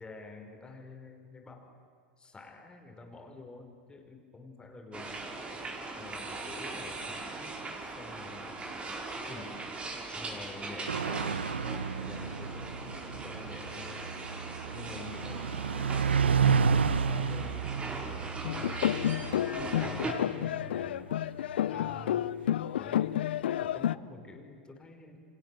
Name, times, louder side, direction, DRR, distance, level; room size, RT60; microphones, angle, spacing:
voice 1, 0.0-1.8 2.2-5.5 6.0-8.7 9.1-9.5 10.1-11.5 12.0-14.1 14.7-19.3 19.9-21.2 21.7-22.3 22.7-23.2 23.5-25.2, left 3 dB, 15° left, 4 dB, 5.3 m, -48 dB
sound 1, 4.9-20.1, right 3 dB, 20° right, 4.6 m, -40 dB
sound 2, 10.9-21.8, right 6 dB, 90° right, 1.2 m, -31 dB
sound 3, 18.4-23.9, left 11 dB, 75° left, 0.8 m, -30 dB
29.5 x 25.5 x 7.8 m, 2.4 s
hypercardioid pair, 100°, 6 cm